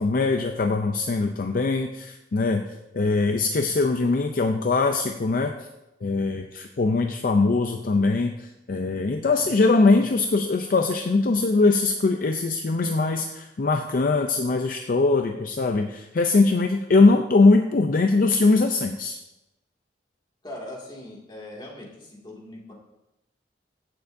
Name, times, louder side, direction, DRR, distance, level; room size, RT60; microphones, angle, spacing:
voice 1, 0.0-2.6 2.9-5.6 6.0-19.2, left 3 dB, 50° left, 5 dB, 0.5 m, -21 dB
voice 2, 20.4-22.7, left 1 dB, 25° left, -3 dB, 2.1 m, -40 dB
15.0 x 6.8 x 2.6 m, 0.95 s
head